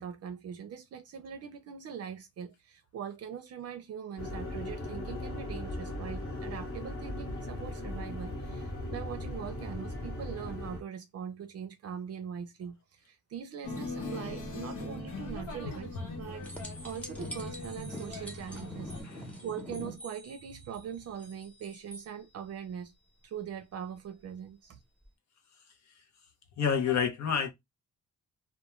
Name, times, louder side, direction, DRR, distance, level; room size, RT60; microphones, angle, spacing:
voice 1, 0.0-16.4 16.8-22.9 23.2-24.8, right 8 dB, 55° right, 0.5 m, -42 dB
sound 1, 4.2-10.8, left 1 dB, 45° left, 1.0 m, -38 dB
sound 2, 13.6-19.0, left 2 dB, 85° left, 1.0 m, -40 dB
voice 2, 15.6-16.0 19.0-19.4 26.6-27.5, left 7 dB, 65° left, 0.7 m, -30 dB
sound 3, 16.4-22.1 25.0-25.1, equal, 5° left, 0.8 m, -45 dB
2.3 x 2.2 x 3.0 m
cardioid pair, 105°, 30 cm